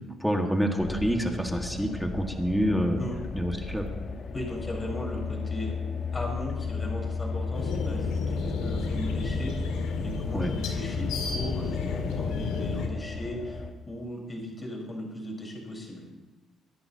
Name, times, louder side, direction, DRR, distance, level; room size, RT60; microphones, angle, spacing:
voice 1, 0.2-3.0 3.3-3.9 10.3-10.5, equal, ahead, 3 dB, 1.7 m, -27 dB
sound 1, 0.8-13.7, left 4 dB, 50° left, 1.2 m, -34 dB
voice 2, 4.3-5.8 6.1-16.1, left 1 dB, 25° left, 0 dB, 4.5 m, -37 dB
sound 2, 7.5-12.9, left 5 dB, 85° left, 1.8 m, -32 dB
23.0 x 10.5 x 2.9 m, 1.2 s
cardioid pair, 95°, 0 cm